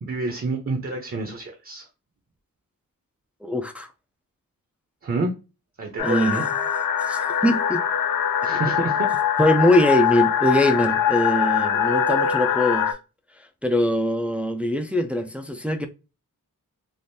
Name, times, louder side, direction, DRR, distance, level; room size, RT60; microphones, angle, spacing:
voice 1, 0.0-1.9 5.0-5.3 5.8-6.4 8.4-9.1, right 3 dB, 40° right, 0.6 m, -28 dB
voice 2, 3.4-3.9 6.0-6.5 7.1-7.8 9.4-12.9 13.6-15.9, left 1 dB, 5° right, 0.3 m, -22 dB
sound 1, 6.0-12.9, left 8 dB, 75° left, 0.5 m, -23 dB
3.5 x 2.5 x 2.6 m
wide cardioid pair, 120°, 34 cm